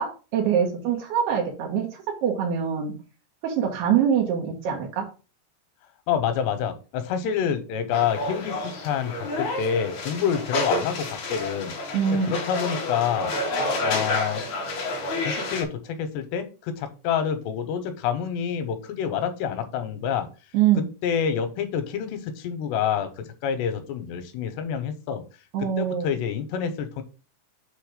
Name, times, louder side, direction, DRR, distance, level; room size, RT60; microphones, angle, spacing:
voice 1, 0.0-2.9 3.4-5.1 11.9-12.3 20.5-20.8 25.5-26.1, right 8 dB, 75° right, -1 dB, 3.1 m, -24 dB
voice 2, 6.1-11.7 12.3-13.3 13.8-14.4 15.2-20.3 21.0-25.2 25.8-27.0, left 8 dB, 90° left, 10 dB, 3.0 m, -27 dB
sound 1, 7.9-15.6, left 2 dB, 60° left, 2.0 m, -29 dB
7.6 x 3.3 x 5.0 m, 0.34 s
omnidirectional pair, 4.7 m